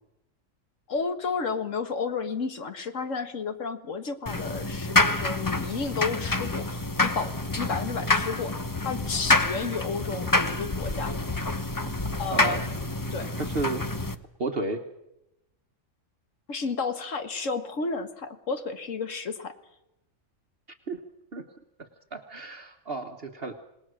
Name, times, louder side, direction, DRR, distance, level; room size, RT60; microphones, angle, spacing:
voice 1, 0.9-8.5 8.8-11.2 12.0-13.3 16.5-19.5, left 4 dB, 70° left, 9 dB, 1.9 m, -32 dB
sound 1, 4.3-14.1, left 2 dB, 20° left, 0.8 m, -27 dB
voice 2, 12.3-12.6 13.2-13.8 14.4-14.8 20.9-21.0 21.3-21.4 21.8-23.5, right 3 dB, 50° right, 5 dB, 1.4 m, -33 dB
27.0 x 19.5 x 6.4 m, 0.87 s
omnidirectional pair, 1.3 m